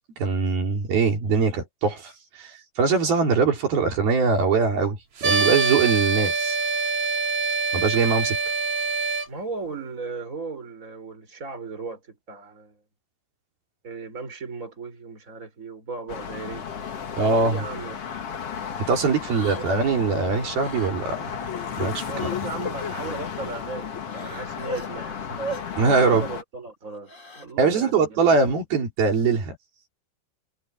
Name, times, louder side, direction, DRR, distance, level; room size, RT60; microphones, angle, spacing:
voice 1, 0.2-2.1 2.4-2.5 2.8-5.0 5.2-6.6 7.7-8.4 17.2-17.6 18.8-21.3 21.8-22.3 25.8-26.3 27.6-29.6, right 4 dB, 70° right, 5.7 m, -22 dB
sound 1, 5.2-9.3, right 4 dB, 40° right, 3.1 m, -24 dB
voice 2, 9.3-12.8 13.8-16.8 17.5-18.0 19.3-19.6 22.1-25.4 25.9-28.5, right 4 dB, 20° right, 5.5 m, -36 dB
sound 2, 16.1-26.4, left 7 dB, 45° left, 2.6 m, -34 dB
Crying sobbing, 17.5-17.6 18.1-18.3 19.3-19.9 20.6-20.9 21.3-22.9 23.5-23.6 23.9-24.9 25.4-25.6 26.9-27.5, left 2 dB, 20° left, 2.6 m, -35 dB
omnidirectional pair, 4.4 m